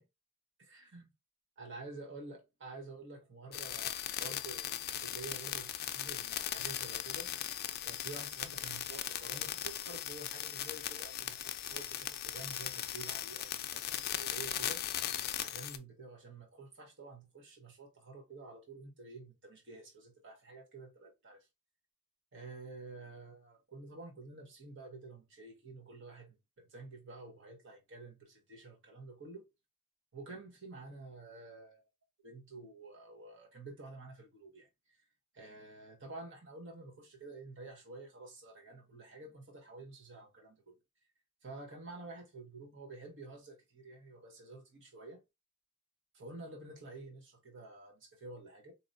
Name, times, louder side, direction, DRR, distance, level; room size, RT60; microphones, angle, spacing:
voice 1, 0.6-1.1 1.6-7.3 7.8-14.8 15.4-21.5 22.3-29.5 30.1-31.8 32.2-34.7 35.3-40.7 41.4-45.2 46.1-48.7, right 3 dB, 60° right, 1.2 m, -50 dB
sound 1, 3.5-15.8, left 11 dB, 50° left, 0.4 m, -38 dB
4.2 x 2.9 x 2.5 m
head